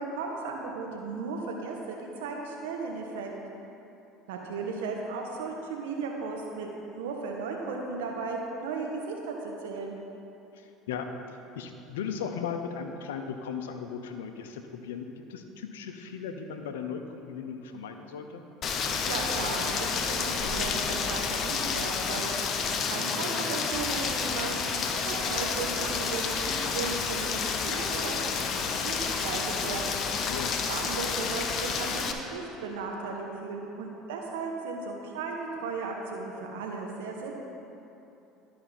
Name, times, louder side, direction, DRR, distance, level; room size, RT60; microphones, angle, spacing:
voice 1, 0.0-3.3 4.3-10.0 19.1-24.8 25.0-30.0 30.7-37.3, right 4 dB, 75° right, 1 dB, 1.2 m, -36 dB
voice 2, 10.5-11.1 11.5-18.4 30.3-30.5, left 6 dB, 80° left, 6 dB, 0.6 m, -37 dB
Rain, 18.6-32.1, left 5 dB, 50° left, 0.8 m, -30 dB
12.0 x 5.0 x 4.4 m, 3.0 s
hypercardioid pair, 70°, 0 cm